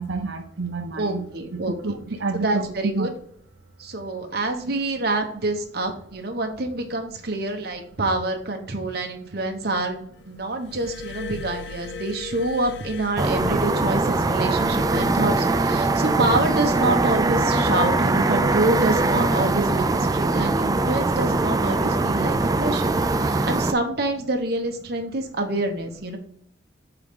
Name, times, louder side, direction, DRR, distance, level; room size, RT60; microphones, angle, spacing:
voice 1, 0.0-1.3 1.5-3.1, right 3 dB, 80° right, 3 dB, 0.7 m, -29 dB
voice 2, 1.0-1.7 2.3-3.1 3.8-22.9 23.2-26.2, right 2 dB, 55° right, 4 dB, 1.2 m, -26 dB
Glass, 10.6-14.2 15.2-15.4, left 4 dB, 65° left, 0.4 m, -38 dB
sound 1, 13.2-23.7, right 2 dB, 20° right, 0.3 m, -22 dB
9.0 x 3.9 x 3.7 m, 0.64 s
head